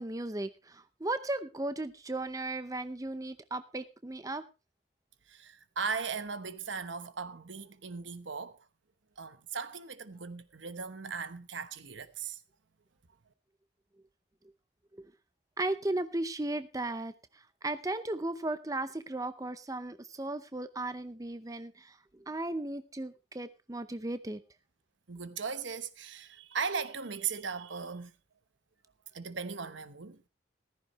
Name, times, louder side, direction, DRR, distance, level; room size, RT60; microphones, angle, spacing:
voice 1, 0.0-4.4 15.0-15.1 15.6-24.4, right 2 dB, 20° right, 0.6 m, -36 dB
voice 2, 5.3-8.6 9.2-12.4 25.1-28.1 29.1-30.2, right 5 dB, 80° right, 1.0 m, -38 dB
14.5 x 14.0 x 3.1 m
head